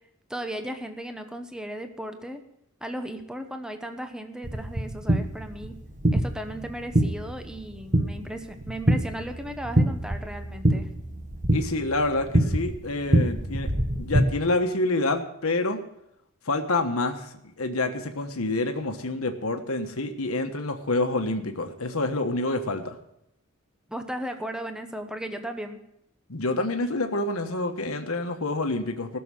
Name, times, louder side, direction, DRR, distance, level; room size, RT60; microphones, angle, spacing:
voice 1, 0.3-2.4 2.8-5.8 6.1-10.9 23.9-25.8, right 1 dB, 5° right, 6 dB, 0.9 m, -36 dB
sound 1, 4.4-14.2, right 1 dB, 35° right, 1.4 m, -26 dB
voice 2, 11.5-13.7 14.0-15.8 16.5-17.3 17.6-23.0 26.3-29.2, left 2 dB, 90° left, 5 dB, 1.3 m, -27 dB
16.0 x 6.9 x 7.7 m, 0.80 s
head